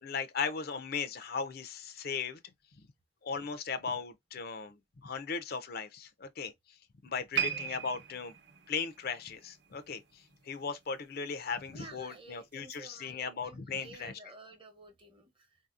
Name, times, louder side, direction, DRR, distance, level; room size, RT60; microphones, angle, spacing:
voice 1, 0.0-2.4 2.8-2.9 3.2-6.5 7.0-8.3 8.7-14.1, left 5 dB, 55° left, 0.6 m, -37 dB
voice 2, 7.3-7.7 11.7-15.7, right 3 dB, 30° right, 0.9 m, -52 dB
sound 1, 7.3-10.6 10.9-11.2 11.9-12.0, right 9 dB, 70° right, 0.8 m, -38 dB
4.0 x 2.7 x 2.4 m
head